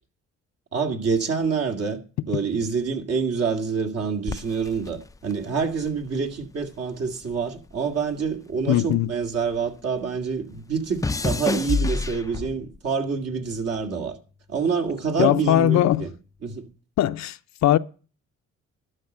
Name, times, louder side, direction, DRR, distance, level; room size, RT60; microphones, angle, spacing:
voice 1, 0.7-2.0 2.3-14.1 14.5-16.1 16.4-16.6, right 5 dB, 55° right, 2.1 m, -27 dB
sound 1, 4.3-6.8 7.0-9.7 10.0-12.8 13.5-13.9, left 3 dB, 10° left, 0.4 m, -30 dB
voice 2, 8.7-9.1 15.2-16.1 17.0-17.8, left 13 dB, 65° left, 0.6 m, -20 dB
12.0 x 5.4 x 7.8 m
cardioid pair, 90°, 30 cm